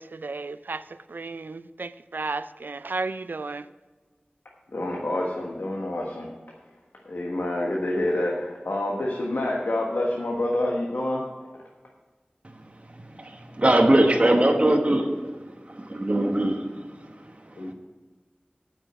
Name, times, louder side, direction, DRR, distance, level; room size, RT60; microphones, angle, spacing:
voice 1, 0.0-3.7, right 3 dB, 85° right, 14 dB, 0.4 m, -33 dB
voice 2, 4.7-6.3 7.0-11.3 17.6-17.7, left 1 dB, 90° left, -2 dB, 1.3 m, -27 dB
voice 3, 12.6-15.3 15.7-17.7, right 1 dB, 40° right, 3 dB, 1.1 m, -23 dB
8.8 x 6.2 x 7.9 m, 1.3 s
wide cardioid pair, 50°, 3 cm